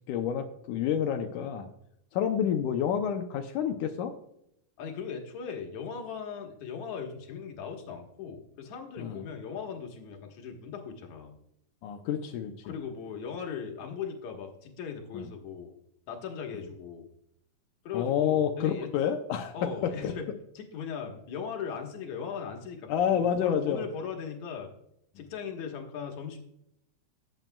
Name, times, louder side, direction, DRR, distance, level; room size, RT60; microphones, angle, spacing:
voice 1, 0.1-1.7 2.1-4.1 9.0-9.2 11.8-12.5 15.1-15.3 17.9-19.6 19.8-20.1 22.9-23.8, left 8 dB, 80° left, 6 dB, 1.9 m, -28 dB
voice 2, 4.8-11.4 12.6-15.7 16.1-17.1 17.8-18.9 19.5-20.3 20.6-24.7 25.2-26.4, left 6 dB, 60° left, 2 dB, 2.3 m, -38 dB
13.5 x 9.1 x 2.3 m, 0.76 s
omnidirectional pair, 4.3 m